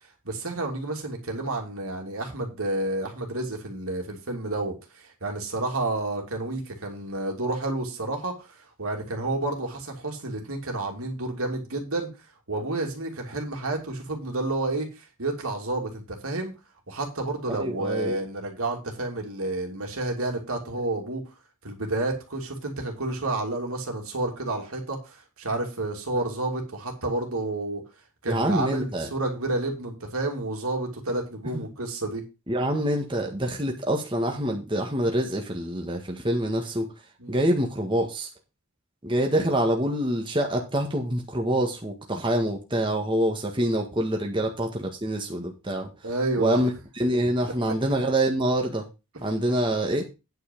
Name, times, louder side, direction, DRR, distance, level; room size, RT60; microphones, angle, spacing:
voice 1, 0.2-12.1 12.5-16.5 16.9-21.3 21.6-27.8 28.2-32.2 37.2-37.4 46.0-46.6, right 2 dB, 75° right, 2 dB, 2.8 m, -30 dB
voice 2, 17.5-18.2 28.3-29.1 31.5-31.6 32.5-36.9 37.3-38.3 39.0-45.9 46.4-48.9 49.2-50.0, right 1 dB, 20° right, 1 dB, 1.7 m, -26 dB
9.6 x 5.6 x 5.3 m, 0.27 s
head